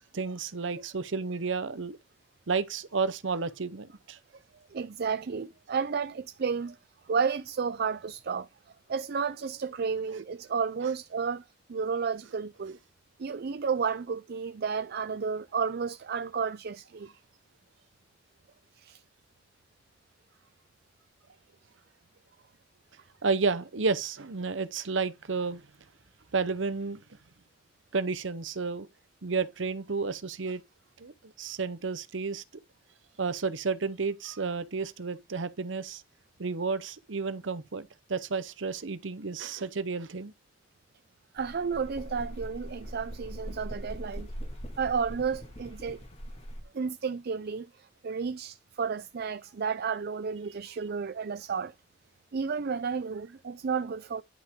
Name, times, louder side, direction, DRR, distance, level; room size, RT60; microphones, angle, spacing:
voice 1, 0.1-2.0 2.5-4.2 23.2-25.6 26.3-27.0 27.9-28.9 29.2-30.6 31.0-32.4 33.2-36.0 36.4-40.3, right 4 dB, 80° right, 0.8 m, -31 dB
voice 2, 4.7-6.8 7.1-8.5 8.9-11.4 11.7-12.8 13.2-17.1 18.8-19.0 41.3-44.3 44.8-46.0 46.7-51.7 52.3-54.2, right 5 dB, 55° right, 0.5 m, -32 dB
sound 1, 41.4-46.6, equal, 35° left, 2.0 m, -41 dB
10.5 x 5.9 x 3.7 m
head